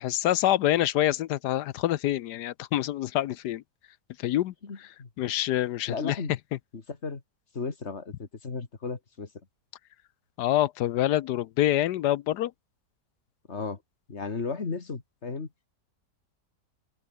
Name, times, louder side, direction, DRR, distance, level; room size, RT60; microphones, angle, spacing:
voice 1, 0.0-3.6 4.2-4.5 5.2-6.2 10.4-12.5, left 13 dB, 75° left, 1.2 m, -26 dB
voice 2, 4.6-5.1 5.9-6.3 6.7-7.2 7.5-9.3 13.5-13.8 14.1-15.5, left 4 dB, 40° left, 2.4 m, -35 dB
open air
omnidirectional pair, 1.8 m